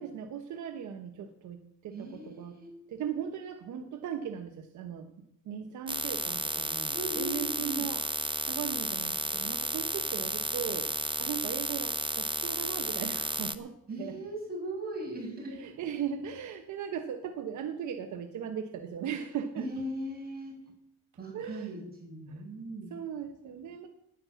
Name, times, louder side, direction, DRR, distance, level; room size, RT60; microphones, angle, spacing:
voice 1, 0.0-2.6 2.9-8.0 8.5-14.2 15.5-19.7 21.3-21.8 22.3-22.4 22.9-23.9, right 8 dB, 75° right, 7 dB, 1.1 m, -38 dB
voice 2, 1.9-2.7 6.9-7.9 13.9-15.6 19.6-20.6 21.2-22.9, right 1 dB, 30° right, 0 dB, 6.6 m, -38 dB
sound 1, 5.9-13.6, right 3 dB, 15° right, 0.8 m, -33 dB
10.0 x 9.8 x 8.4 m, 0.77 s
cardioid pair, 90°, 30 cm